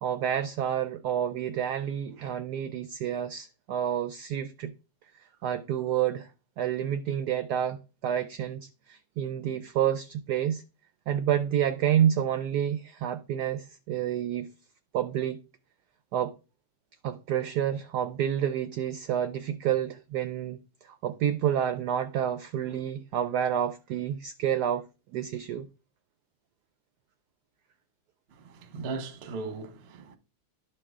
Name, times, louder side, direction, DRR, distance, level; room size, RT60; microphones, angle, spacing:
voice 1, 0.0-4.7 5.4-6.3 6.6-10.6 11.1-14.5 14.9-15.4 16.1-16.4 17.0-20.6 20.8-25.7, right 10 dB, 80° right, 0.9 m, -29 dB
voice 2, 28.3-30.2, right 4 dB, 50° right, 0.8 m, -38 dB
12.0 x 4.6 x 3.7 m
omnidirectional pair, 2.3 m